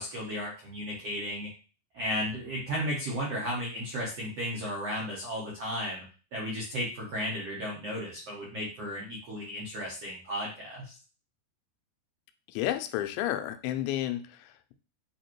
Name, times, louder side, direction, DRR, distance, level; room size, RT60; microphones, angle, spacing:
voice 1, 0.0-1.5 1.9-6.0 6.3-11.0, equal, 70° right, -5 dB, 1.5 m, -34 dB
voice 2, 12.5-14.7, left 13 dB, 90° left, 8 dB, 2.9 m, -32 dB
8.0 x 2.8 x 4.5 m, 0.36 s
omnidirectional pair, 5.0 m